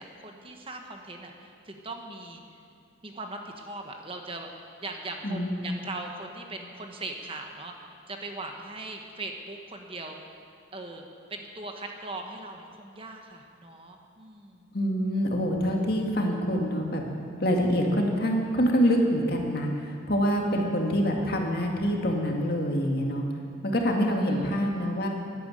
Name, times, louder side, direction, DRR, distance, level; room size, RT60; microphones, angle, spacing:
voice 1, 0.0-2.4 3.0-7.7 8.1-10.2 10.7-11.0 11.3-14.7 24.1-24.5, right 2 dB, 30° right, 3 dB, 1.2 m, -40 dB
voice 2, 5.2-5.6 14.7-17.0 17.4-23.2 23.6-25.1, equal, 55° left, 1 dB, 2.0 m, -25 dB
11.5 x 11.5 x 8.7 m, 2.4 s
head